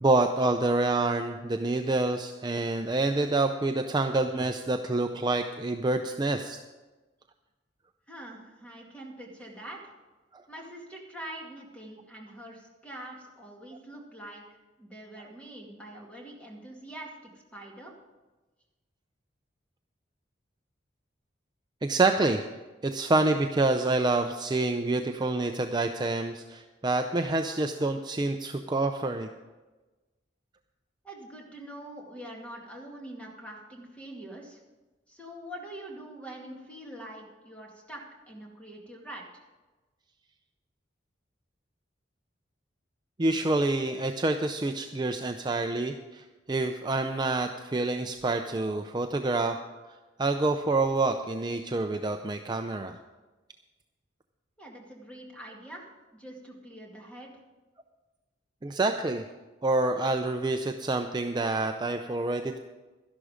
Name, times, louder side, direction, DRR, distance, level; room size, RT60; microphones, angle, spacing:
voice 1, 0.0-6.6 10.3-10.4 21.8-22.4 22.8-29.3 43.2-49.6 50.2-53.0 58.6-59.2 59.6-62.6, right 2 dB, 25° right, 6 dB, 0.5 m, -27 dB
voice 2, 8.1-9.9 10.5-14.4 14.8-17.9 31.0-34.6 35.1-39.5 54.6-57.3, right 1 dB, 5° left, -1 dB, 2.2 m, -44 dB
12.5 x 11.5 x 5.1 m, 1.2 s
head